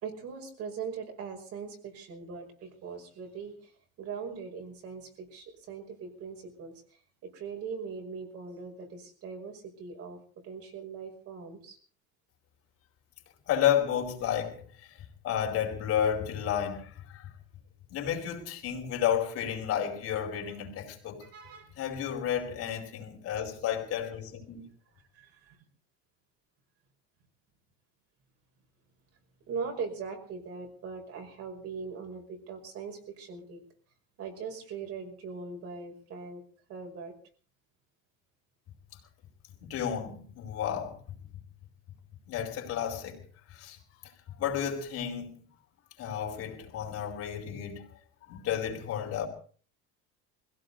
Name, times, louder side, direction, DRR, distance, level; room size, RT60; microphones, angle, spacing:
voice 1, 0.0-3.6 4.0-6.7 7.2-10.2 10.4-11.8 20.4-20.5 21.2-21.8 25.1-25.6 29.5-33.6 34.2-36.4 36.7-37.1, right 5 dB, 55° right, 5.4 m, -40 dB
voice 2, 13.5-14.6 15.2-17.3 17.9-21.3 21.8-24.6 39.6-41.0 42.3-43.2 43.5-43.8 44.4-45.4 46.0-47.9 48.3-49.3, left 9 dB, 50° left, 4.5 m, -31 dB
21.5 x 16.5 x 4.0 m
cardioid pair, 145°, 30 cm